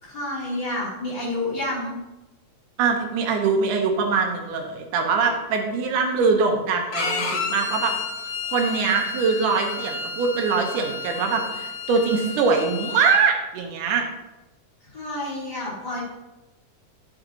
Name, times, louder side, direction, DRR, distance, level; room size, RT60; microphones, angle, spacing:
voice 1, 0.0-2.0 14.9-16.0, left 1 dB, 30° left, -8 dB, 3.5 m, -29 dB
voice 2, 2.8-7.9 8.5-14.1, right 5 dB, 85° right, 3 dB, 2.6 m, -23 dB
Bowed string instrument, 6.9-13.2, left 4 dB, 75° left, 1.2 m, -31 dB
11.5 x 6.5 x 2.9 m, 1.0 s
omnidirectional pair, 3.6 m